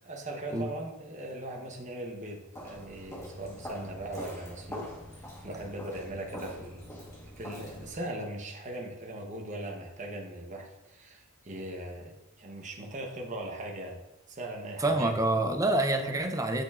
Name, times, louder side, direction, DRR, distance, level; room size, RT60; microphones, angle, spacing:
voice 1, 0.0-6.9 7.4-14.0 14.3-15.1, right 1 dB, 35° right, 1 dB, 0.9 m, -40 dB
Walk footsteps, 2.5-8.1, equal, 15° left, 1.2 m, -44 dB
voice 2, 14.8-16.6, right 2 dB, 15° right, 6 dB, 0.5 m, -27 dB
8.0 x 6.5 x 2.4 m, 0.93 s
head